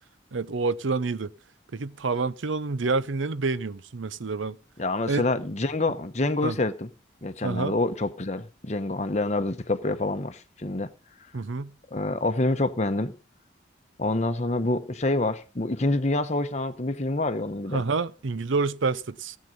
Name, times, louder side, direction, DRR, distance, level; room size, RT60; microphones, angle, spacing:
voice 1, 0.3-1.3 1.7-4.6 5.1-5.3 6.4-6.6 7.4-7.7 11.3-11.7 17.7-19.4, right 4 dB, 85° right, 0.7 m, -28 dB
voice 2, 4.8-6.9 7.2-10.9 11.9-13.1 14.0-17.8, left 2 dB, 35° left, 0.9 m, -27 dB
16.5 x 7.5 x 5.3 m
head